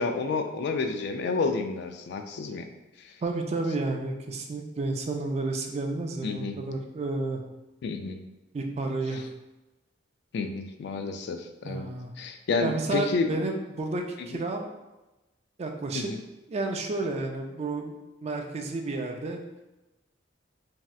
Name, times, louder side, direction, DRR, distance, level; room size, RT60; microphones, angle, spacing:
voice 1, 0.0-2.7 3.0-3.1 6.2-6.6 7.8-8.2 10.3-11.9 12.2-13.3 15.9-16.2, left 4 dB, 65° left, 6 dB, 0.3 m, -30 dB
voice 2, 3.2-7.4 8.5-9.2 11.6-12.1 12.6-14.7 15.6-16.1 16.5-17.9 18.2-19.4, right 2 dB, 35° right, 3 dB, 0.3 m, -31 dB
3.1 x 2.7 x 2.3 m, 1.0 s
head